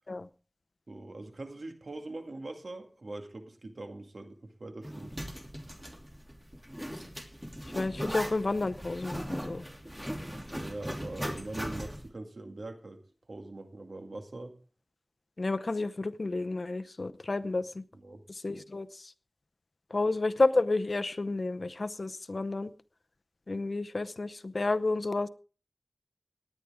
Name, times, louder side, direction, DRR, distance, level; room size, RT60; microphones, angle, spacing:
voice 1, 0.9-5.2 10.6-13.0 13.3-14.5 17.9-18.2, right 2 dB, 85° right, 2.1 m, -42 dB
Zipper (clothing), 4.8-12.1, equal, 10° right, 2.8 m, -39 dB
voice 2, 7.8-9.6 15.4-17.6 18.4-18.9 19.9-22.7 23.5-25.3, left 2 dB, 70° left, 0.7 m, -30 dB
18.5 x 11.0 x 3.6 m
wide cardioid pair, 60°, 0 cm